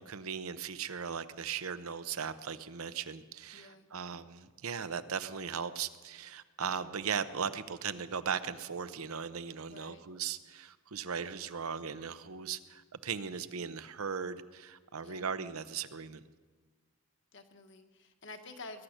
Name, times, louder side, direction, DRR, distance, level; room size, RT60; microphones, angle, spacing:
voice 1, 0.0-16.2, right 6 dB, 85° right, 13 dB, 0.7 m, -38 dB
voice 2, 3.5-3.9 9.7-10.0 15.0-15.3 17.3-18.8, left 3 dB, 55° left, 6 dB, 1.4 m, -49 dB
20.5 x 10.5 x 6.5 m, 1.4 s
head